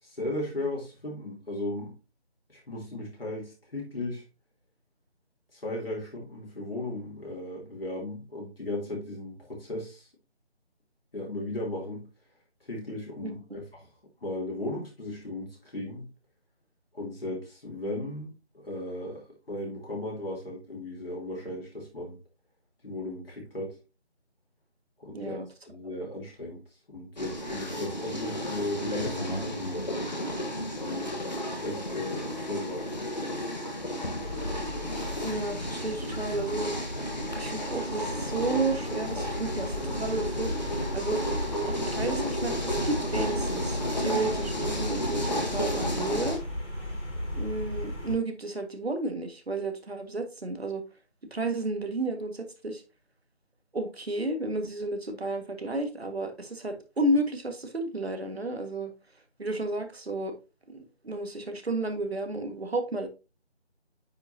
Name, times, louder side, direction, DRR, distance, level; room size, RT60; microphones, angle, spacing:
voice 1, 0.0-2.0 2.5-4.2 5.5-10.1 11.1-12.1 12.6-13.9 14.2-16.0 16.9-22.2 22.8-23.8 25.0-30.1 30.6-31.2 31.6-33.2, left 1 dB, 60° left, 3.0 m, -36 dB
voice 2, 13.2-13.6 25.1-25.5 35.2-36.7 37.4-41.2 41.7-46.4 47.3-50.8 51.3-52.8 53.7-58.9 59.4-60.4 60.7-63.1, right 2 dB, 65° right, 1.7 m, -32 dB
sound 1, 27.2-46.4, equal, 40° left, 1.3 m, -33 dB
sound 2, 34.2-48.1, left 1 dB, 85° left, 4.5 m, -35 dB
9.2 x 5.3 x 2.7 m
figure-of-eight pair, 180°, 34 cm